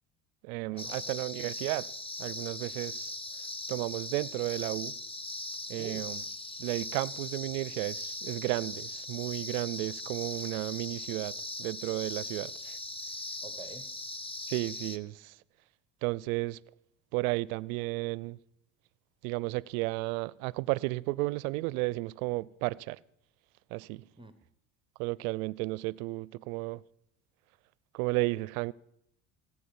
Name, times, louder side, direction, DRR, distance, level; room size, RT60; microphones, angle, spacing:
voice 1, 0.4-1.9 2.2-3.1 3.7-5.0 5.7-6.2 6.6-12.8 14.4-15.4 16.0-16.6 17.1-18.4 19.2-23.0 23.7-24.0 25.0-26.8 27.9-28.7, right 22 dB, 75° right, 0.6 m, -33 dB
sound 1, 0.8-15.0, left 2 dB, 10° left, 1.0 m, -40 dB
voice 2, 5.8-6.1 13.4-13.9 24.2-24.3, right 4 dB, 10° right, 1.0 m, -47 dB
17.5 x 8.6 x 7.0 m
hypercardioid pair, 80°, 43 cm